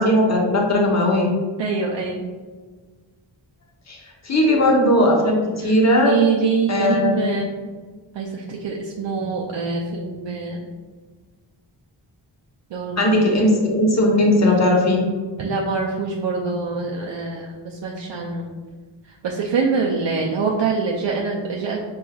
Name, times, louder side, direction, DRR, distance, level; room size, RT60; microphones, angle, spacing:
voice 1, 0.0-1.3 3.9-4.0 4.2-6.1 6.7-7.2 13.0-15.0, left 1 dB, 35° left, -1 dB, 0.9 m, -18 dB
voice 2, 1.6-2.2 5.6-5.7 6.0-7.5 8.1-10.7 12.7-13.3 15.4-18.5 19.2-21.8, right 5 dB, 65° right, -2 dB, 0.6 m, -24 dB
4.6 x 3.1 x 2.3 m, 1.4 s
cardioid pair, 65°, 46 cm